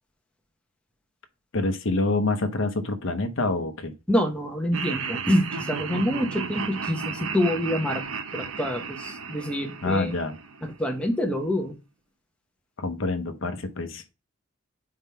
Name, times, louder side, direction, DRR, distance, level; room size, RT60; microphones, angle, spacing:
voice 1, 1.5-3.9 9.8-10.4 12.8-14.0, left 2 dB, 60° left, 0.8 m, -26 dB
voice 2, 4.1-8.0 8.3-10.1 10.6-11.7, left 1 dB, 5° left, 0.8 m, -26 dB
Laughter, 4.7-10.9, right 5 dB, 70° right, 0.7 m, -34 dB
4.7 x 3.7 x 5.5 m
head